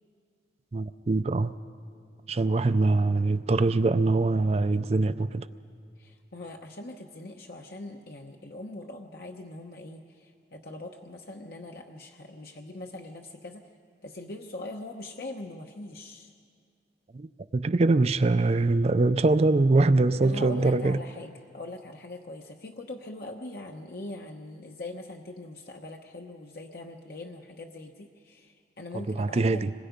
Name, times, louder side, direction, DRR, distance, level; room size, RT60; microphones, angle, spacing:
voice 1, 0.7-1.5 2.3-5.5 17.1-17.3 17.5-21.0 29.2-29.7, right 2 dB, 35° right, 0.4 m, -23 dB
voice 2, 6.0-13.6 14.0-16.3 20.2-29.6, left 2 dB, 60° left, 1.0 m, -41 dB
26.0 x 21.5 x 5.2 m
head